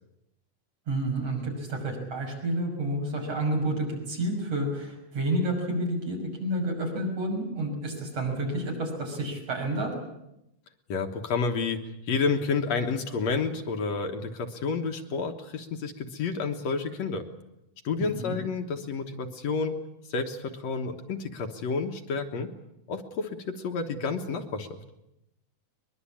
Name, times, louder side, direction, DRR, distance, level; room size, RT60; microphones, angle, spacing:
voice 1, 0.9-9.9 18.2-18.4, right 1 dB, 50° right, 1 dB, 7.1 m, -30 dB
voice 2, 10.9-17.3 17.8-19.8 20.1-22.5 22.9-24.8, left 4 dB, 65° left, 5 dB, 2.4 m, -30 dB
22.5 x 22.0 x 8.7 m, 0.86 s
omnidirectional pair, 3.5 m